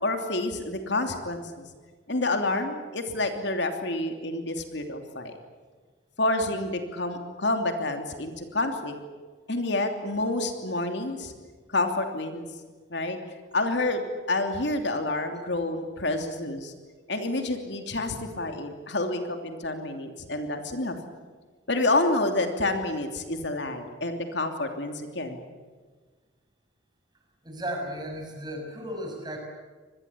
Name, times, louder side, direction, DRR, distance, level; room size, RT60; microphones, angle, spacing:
voice 1, 0.0-1.6 2.1-5.3 6.2-8.9 9.5-11.3 11.7-12.4 12.9-13.2 13.5-16.7 17.1-20.9 21.7-25.5, left 2 dB, 65° left, 5 dB, 3.0 m, -28 dB
voice 2, 27.4-29.4, equal, 20° right, 2 dB, 6.0 m, -35 dB
25.5 x 20.5 x 8.6 m, 1.4 s
head